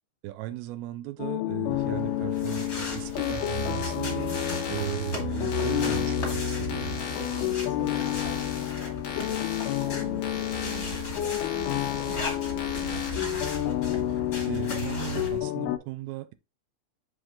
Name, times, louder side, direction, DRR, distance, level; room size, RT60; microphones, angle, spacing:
voice 1, 0.2-4.3 4.7-7.0 14.1-14.2 14.5-16.3, right 15 dB, 80° right, 2.4 m, -37 dB
sound 1, 1.2-15.8, left 14 dB, 90° left, 2.6 m, -30 dB
sound 2, 1.7-15.4, equal, 30° left, 1.9 m, -36 dB
sound 3, 3.1-13.1, left 5 dB, 55° left, 1.7 m, -40 dB
voice 2, 7.1-13.4, right 6 dB, 60° right, 2.0 m, -46 dB
6.3 x 5.0 x 3.5 m
omnidirectional pair, 4.5 m